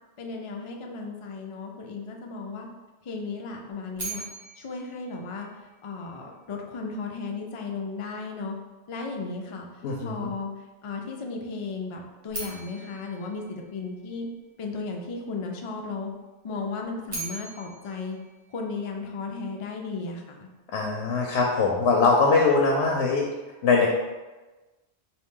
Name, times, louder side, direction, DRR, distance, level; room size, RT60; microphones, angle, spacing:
voice 1, 0.2-2.7 3.0-4.2 4.6-5.5 5.8-8.5 8.9-9.7 10.0-10.5 10.8-14.3 14.6-16.1 16.4-18.2 18.5-20.5, left 4 dB, 50° left, 1 dB, 0.4 m, -35 dB
sound 1, 4.0-6.1 12.3-14.5 16.8-19.2, right 2 dB, 25° right, 0.8 m, -40 dB
voice 2, 9.8-10.3 20.7-23.2 23.6-23.9, left 4 dB, 85° left, -1 dB, 0.9 m, -22 dB
3.9 x 2.7 x 3.6 m, 1.2 s
omnidirectional pair, 1.1 m